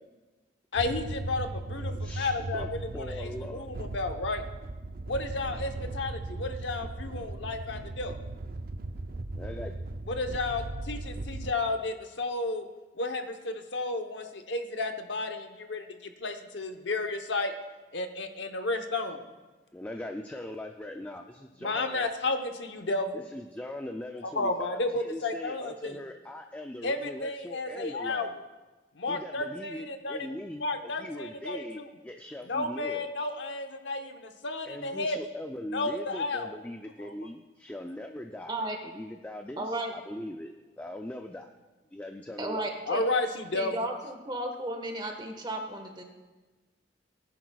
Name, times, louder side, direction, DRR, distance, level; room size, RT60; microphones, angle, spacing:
voice 1, 0.7-4.4 5.1-8.2 10.1-12.7 13.0-17.5 17.9-19.2 21.6-23.2 24.2-26.0 26.8-28.4 28.9-30.2 30.6-31.9 32.5-35.2 35.7-36.5 37.0-37.1 42.9-43.8, left 2 dB, 80° left, 6 dB, 0.9 m, -32 dB
sound 1, 0.7-11.5, right 2 dB, 55° right, 0.5 m, -37 dB
voice 2, 1.9-3.7 9.3-9.7 19.7-22.1 23.1-28.3 29.1-33.1 34.7-41.5 41.9-42.7, left 1 dB, 10° left, 4 dB, 0.4 m, -41 dB
voice 3, 39.6-39.9 42.4-43.0 43.5-46.0, right 1 dB, 25° right, 4 dB, 1.3 m, -34 dB
18.5 x 10.5 x 2.3 m, 1.2 s
head